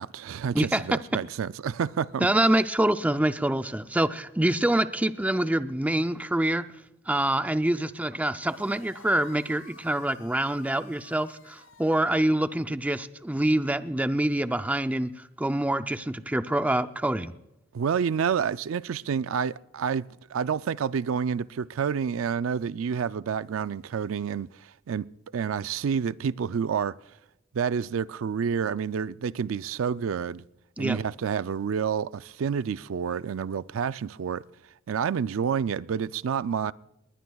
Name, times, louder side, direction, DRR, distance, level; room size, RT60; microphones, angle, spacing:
voice 1, 0.0-2.3 17.7-20.0 20.3-27.0 27.5-30.4 30.8-34.4 34.9-36.7, right 7 dB, 85° right, 0.4 m, -29 dB
voice 2, 0.5-1.0 2.2-6.7 7.1-17.3 30.8-31.0, right 1 dB, 5° right, 0.4 m, -26 dB
sound 1, 8.4-12.1, left 4 dB, 85° left, 3.5 m, -53 dB
20.5 x 20.0 x 2.3 m
head